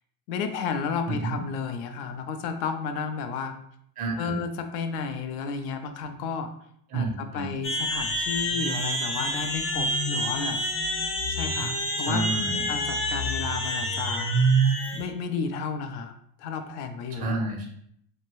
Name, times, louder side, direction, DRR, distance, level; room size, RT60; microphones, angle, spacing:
voice 1, 0.3-3.6 4.2-6.5 6.9-10.6 11.3-12.2 12.7-14.3 14.9-16.1 16.4-17.5, left 5 dB, 65° left, 8 dB, 0.5 m, -32 dB
voice 2, 1.1-1.4 4.0-4.4 6.9-7.5 12.0-12.8 17.1-17.7, right 2 dB, 20° right, 1 dB, 0.4 m, -30 dB
sound 1, 7.6-15.1, right 1 dB, 40° left, 0.9 m, -27 dB
2.7 x 2.1 x 3.0 m, 0.69 s
supercardioid pair, 120°, 49 cm